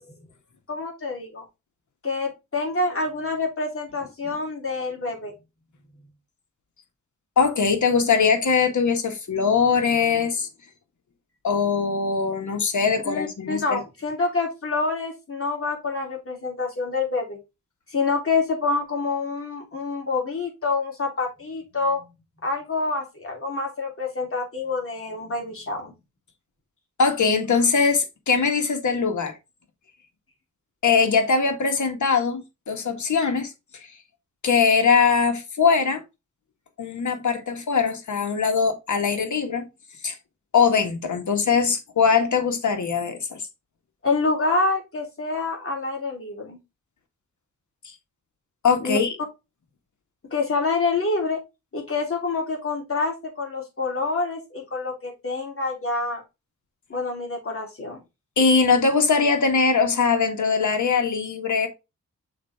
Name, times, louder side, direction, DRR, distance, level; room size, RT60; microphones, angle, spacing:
voice 1, 0.7-1.4 2.0-5.3 13.0-17.4 17.9-22.0 22.4-25.9 44.0-46.6 48.8-49.0 50.2-51.4 51.7-56.2 56.9-58.0, left 3 dB, 45° left, 3.2 m, -27 dB
voice 2, 7.4-10.5 11.4-13.8 27.0-29.3 30.8-33.5 34.4-36.0 36.8-39.7 40.0-40.1 40.5-43.4 48.6-49.2 58.4-61.7, left 5 dB, 70° left, 1.6 m, -21 dB
6.4 x 4.4 x 3.5 m
wide cardioid pair, 90°, 30 cm